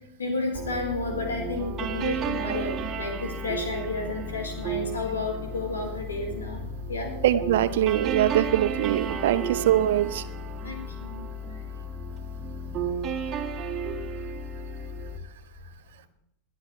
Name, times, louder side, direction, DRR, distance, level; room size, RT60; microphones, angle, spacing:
voice 1, 0.0-7.2 10.6-11.6 12.7-12.8, left 2 dB, 70° left, 1 dB, 4.5 m, -32 dB
sound 1, 0.5-15.2, right 3 dB, 30° right, 2.2 m, -33 dB
voice 2, 7.2-10.2, right 12 dB, 55° right, 14 dB, 0.8 m, -23 dB
21.0 x 12.0 x 3.4 m, 0.84 s
figure-of-eight pair, 90°, 0 cm